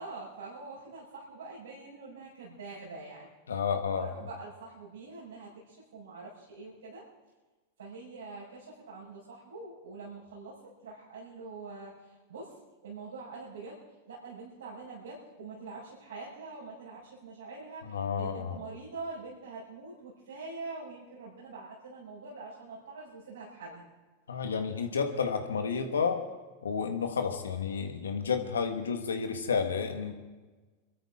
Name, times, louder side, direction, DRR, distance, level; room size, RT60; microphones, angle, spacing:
voice 1, 0.0-3.3 3.9-7.1 7.8-13.8 14.1-23.9, right 3 dB, 90° right, -7 dB, 5.1 m, -44 dB
voice 2, 3.5-4.1 17.9-18.6 24.3-26.2 26.6-30.1, left 6 dB, 90° left, 6 dB, 1.6 m, -31 dB
25.0 x 13.0 x 3.7 m, 1.3 s
hypercardioid pair, 100°, 0 cm